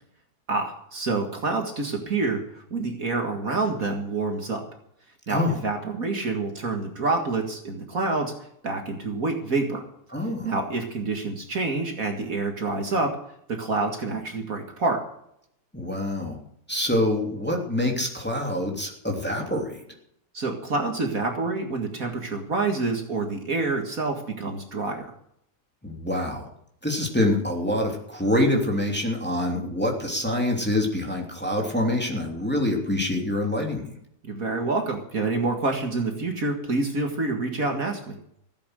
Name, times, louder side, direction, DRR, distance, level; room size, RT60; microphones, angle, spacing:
voice 1, 0.5-4.6 5.3-8.3 8.6-9.8 10.4-13.2 13.5-15.0 20.3-25.1 34.2-38.2, right 3 dB, 55° right, 3 dB, 2.3 m, -27 dB
voice 2, 10.1-10.5 15.7-16.4 16.7-19.8 25.8-26.5 26.8-33.9, left 1 dB, 5° left, 0 dB, 2.9 m, -25 dB
16.0 x 8.9 x 6.4 m, 0.72 s
omnidirectional pair, 1.8 m